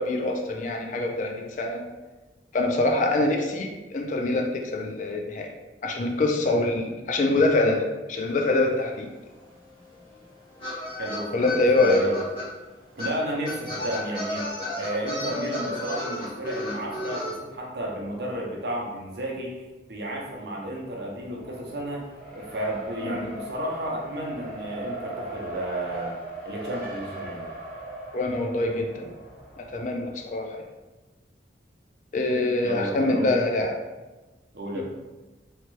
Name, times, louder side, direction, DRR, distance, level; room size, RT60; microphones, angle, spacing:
voice 1, 0.0-1.8 2.5-5.5 5.8-9.1 11.3-12.0 23.0-23.2 28.1-29.1 29.6-30.6 32.1-33.7, left 2 dB, 45° left, 2 dB, 0.3 m, -24 dB
sound 1, 8.9-9.0 9.1-12.4 13.0-13.1 13.4-17.3, left 1 dB, 30° left, 1.0 m, -33 dB
voice 2, 11.0-11.5 11.8-12.2 12.9-19.6 19.9-22.0 22.3-26.1 26.4-27.4 32.6-33.4 34.5-34.8, right 1 dB, 60° right, -1 dB, 0.6 m, -32 dB
Race car auto racing, 21.2-30.2, right 1 dB, 5° left, 1.1 m, -39 dB
2.8 x 2.2 x 3.0 m, 1.1 s
head